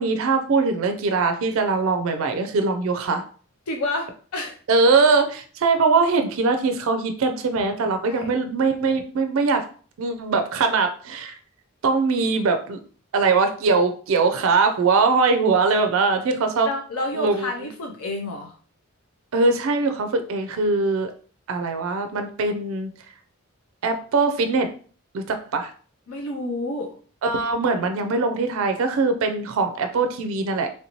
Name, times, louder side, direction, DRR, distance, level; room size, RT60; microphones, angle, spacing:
voice 1, 0.0-3.2 4.7-9.7 10.0-11.3 11.8-12.8 13.1-16.7 17.1-17.7 19.3-21.1 21.5-22.9 23.8-24.7 25.1-25.7 27.2-30.7, right 4 dB, 70° right, 7 dB, 0.4 m, -21 dB
voice 2, 3.7-4.1 4.3-4.6 8.1-8.3 16.7-18.5 26.1-26.9, left 2 dB, 85° left, 2 dB, 0.6 m, -29 dB
3.1 x 2.7 x 2.9 m, 0.43 s
head